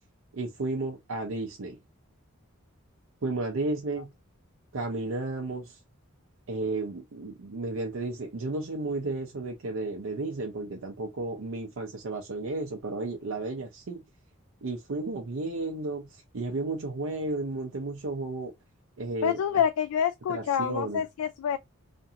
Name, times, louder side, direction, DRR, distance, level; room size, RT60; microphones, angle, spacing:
voice 1, 0.3-1.8 3.2-4.1 4.7-5.8 6.5-14.0 14.6-18.5 19.0-19.4 20.3-21.0, right 2 dB, 65° right, 0.5 m, -33 dB
voice 2, 19.2-21.6, left 8 dB, 85° left, 0.3 m, -27 dB
2.6 x 2.4 x 2.7 m
head